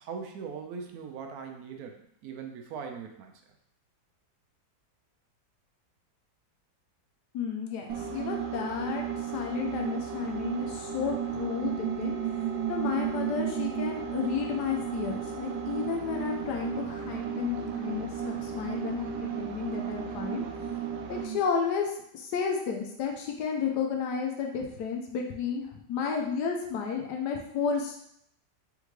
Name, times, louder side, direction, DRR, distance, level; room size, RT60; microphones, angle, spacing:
voice 1, 0.0-3.3, right 6 dB, 70° right, 4 dB, 1.0 m, -40 dB
voice 2, 7.3-12.2 12.7-20.4 21.1-28.0, left 6 dB, 75° left, 1 dB, 1.2 m, -32 dB
sound 1, 7.9-21.4, right 8 dB, 85° right, 1.3 m, -34 dB
3.7 x 3.5 x 3.1 m, 0.72 s
omnidirectional pair, 1.9 m